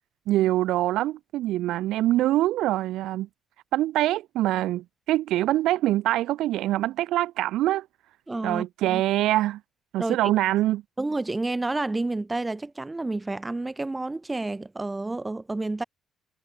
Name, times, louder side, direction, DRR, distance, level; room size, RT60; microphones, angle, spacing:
voice 1, 0.3-3.3 3.7-7.9 8.4-9.6 9.9-10.8, right 15 dB, 90° right, 0.6 m, -24 dB
voice 2, 8.3-9.0 10.0-10.2 11.0-15.8, right 2 dB, 15° right, 2.5 m, -30 dB
cardioid pair, 90°, 0 cm